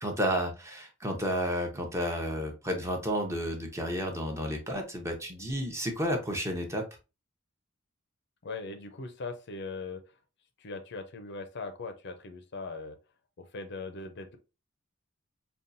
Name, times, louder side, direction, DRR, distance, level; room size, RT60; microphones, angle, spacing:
voice 1, 0.0-6.9, equal, 15° right, 0.8 m, -31 dB
voice 2, 8.4-10.0 10.6-13.0 13.4-14.4, left 3 dB, 55° left, 0.5 m, -40 dB
5.3 x 2.3 x 2.6 m
head